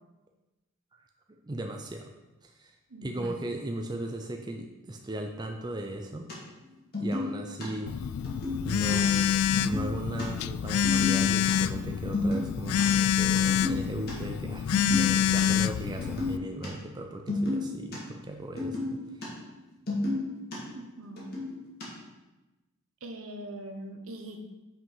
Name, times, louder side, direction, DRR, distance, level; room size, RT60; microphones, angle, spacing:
voice 1, 1.3-2.1 2.4-2.7 3.0-6.3 7.0-8.1 8.6-19.3, right 1 dB, 20° right, 3 dB, 0.4 m, -37 dB
voice 2, 2.9-3.4 20.7-21.3 23.0-24.5, right 1 dB, 65° right, 4 dB, 1.0 m, -42 dB
sound 1, 6.3-6.4 6.6-6.7 6.9-7.7 8.2-8.9 9.2-9.3 9.5-10.2 10.8-11.5 11.8-12.8 13.3-14.1 14.4-14.5 14.7-15.4 15.9-16.7 16.9-18.0 18.4-19.3 19.5-20.6 21.0-21.8, left 2 dB, 45° left, 2.2 m, -31 dB
Telephone, 7.9-16.4, left 9 dB, 80° left, 0.3 m, -27 dB
5.8 x 5.3 x 5.5 m, 1.1 s
head